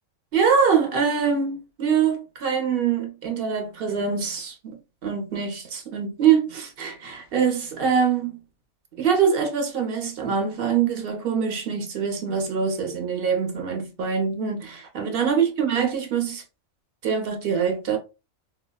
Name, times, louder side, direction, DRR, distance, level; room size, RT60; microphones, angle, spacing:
voice 1, 0.3-8.4 9.0-16.4 17.0-18.0, right 6 dB, 50° right, 0.8 m, -24 dB
3.9 x 2.1 x 2.2 m
omnidirectional pair, 1.4 m